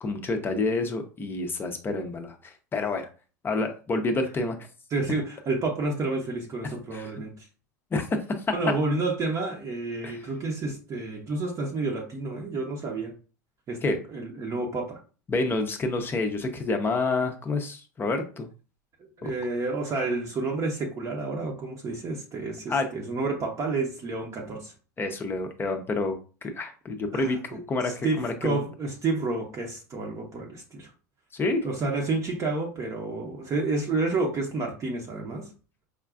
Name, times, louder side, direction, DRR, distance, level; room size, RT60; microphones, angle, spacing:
voice 1, 0.0-3.1 3.4-4.6 6.6-7.1 7.9-8.4 10.0-10.2 13.8-14.0 15.3-18.5 19.2-19.3 22.7-22.9 25.0-26.2 26.4-28.6 31.3-31.6, left 3 dB, 25° left, 5 dB, 0.6 m, -28 dB
voice 2, 4.9-7.5 8.5-13.1 13.7-15.0 19.0-24.7 27.1-30.9 31.6-35.5, right 3 dB, 35° right, 1 dB, 0.7 m, -30 dB
4.9 x 2.3 x 2.4 m, 0.36 s
hypercardioid pair, 100°, 9 cm